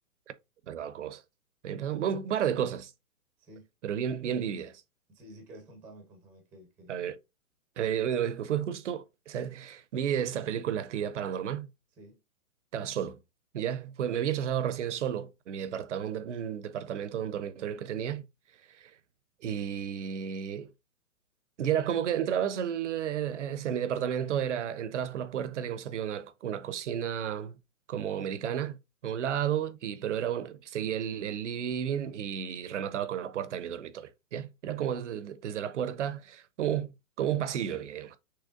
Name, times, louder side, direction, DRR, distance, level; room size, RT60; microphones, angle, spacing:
voice 1, 0.7-1.2 1.6-2.9 3.8-4.8 6.9-7.2 7.8-11.7 12.7-13.2 13.5-18.3 18.7-18.9 19.4-20.7 21.6-27.6 27.9-28.8 29.0-38.2, right 9 dB, 55° right, 0.7 m, -32 dB
voice 2, 5.1-7.1 12.0-12.2 30.0-30.3, right 1 dB, 5° right, 0.7 m, -52 dB
6.5 x 3.3 x 2.4 m
hypercardioid pair, 145°, 44 cm